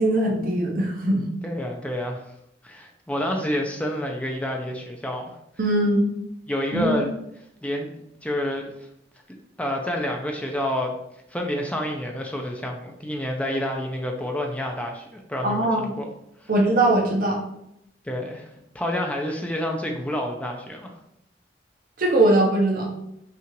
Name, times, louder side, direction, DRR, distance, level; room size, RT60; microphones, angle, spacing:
voice 1, 0.0-1.3 5.6-6.0 6.7-7.0 15.4-15.9 16.5-17.4 22.0-22.9, right 1 dB, 50° right, 0 dB, 0.6 m, -21 dB
voice 2, 1.4-2.2 2.6-5.3 6.5-7.1 7.6-7.9 8.2-8.9 9.6-11.0 11.3-16.1 16.4-16.5 18.0-20.9, left 1 dB, 5° left, 2 dB, 0.4 m, -28 dB
5.7 x 2.4 x 2.9 m, 0.80 s
head